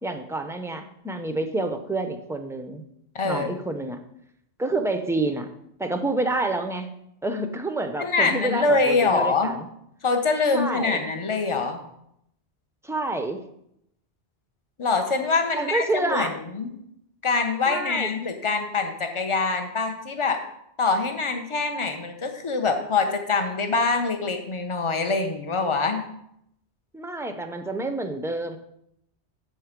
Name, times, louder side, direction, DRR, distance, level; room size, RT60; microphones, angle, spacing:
voice 1, 0.0-2.8 3.2-4.0 4.6-5.5 5.8-6.9 7.2-9.7 10.5-11.0 12.8-13.4 15.5-16.4 17.7-18.2 26.9-28.6, right 2 dB, 5° right, 6 dB, 0.5 m, -28 dB
voice 2, 3.1-3.6 8.0-9.5 10.0-11.8 14.8-16.7 17.2-20.4 20.8-26.1, left 4 dB, 30° left, 6 dB, 0.9 m, -24 dB
7.7 x 7.1 x 5.1 m, 0.76 s
omnidirectional pair, 1.1 m